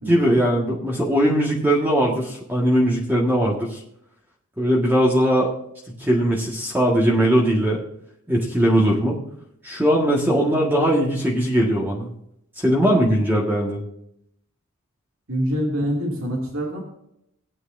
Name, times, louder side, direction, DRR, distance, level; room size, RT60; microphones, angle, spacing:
voice 1, 0.1-3.8 4.6-5.5 5.9-7.8 8.3-9.2 9.6-12.1 12.6-13.8, equal, 10° right, -3 dB, 1.7 m, -20 dB
voice 2, 15.3-16.8, equal, 70° right, -1 dB, 2.5 m, -25 dB
18.5 x 9.5 x 2.6 m, 0.76 s
head